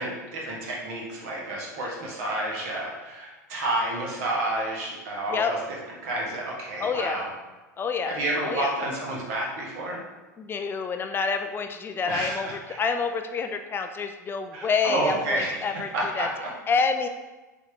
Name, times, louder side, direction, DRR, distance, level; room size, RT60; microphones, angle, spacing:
voice 1, 0.0-5.6 6.0-7.3 8.1-10.0 12.1-12.8 14.5-15.6 15.9-16.5, right 1 dB, 55° right, -3 dB, 1.8 m, -30 dB
voice 2, 6.8-7.2 7.8-8.1 8.4-8.7 10.4-15.9 16.1-16.3 16.7-17.1, left 5 dB, 25° left, 6 dB, 0.4 m, -28 dB
6.8 x 4.2 x 3.6 m, 1.2 s
figure-of-eight pair, 85°, 10 cm